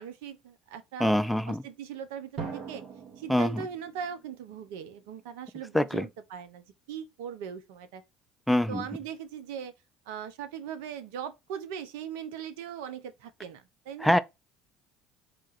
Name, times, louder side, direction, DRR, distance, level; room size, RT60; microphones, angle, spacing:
voice 1, 0.0-1.2 1.5-2.8 3.2-8.0 8.7-9.7 10.1-14.1, right 8 dB, 75° right, 0.6 m, -40 dB
voice 2, 1.0-1.6 3.3-3.6 5.7-6.1 8.5-8.8 14.0-14.2, left 1 dB, ahead, 0.4 m, -24 dB
Drum, 2.4-5.1, right 5 dB, 60° right, 1.4 m, -42 dB
4.4 x 2.4 x 4.0 m
hypercardioid pair, 70°, 0 cm